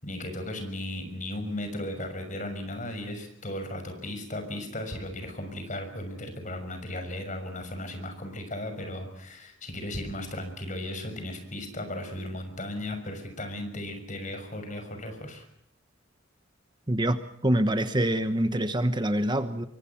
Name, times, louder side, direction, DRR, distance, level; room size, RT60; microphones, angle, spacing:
voice 1, 0.0-15.4, left 1 dB, 40° left, 7 dB, 6.2 m, -36 dB
voice 2, 16.9-19.7, right 1 dB, 25° right, 10 dB, 1.2 m, -25 dB
26.5 x 24.0 x 5.9 m, 0.72 s
head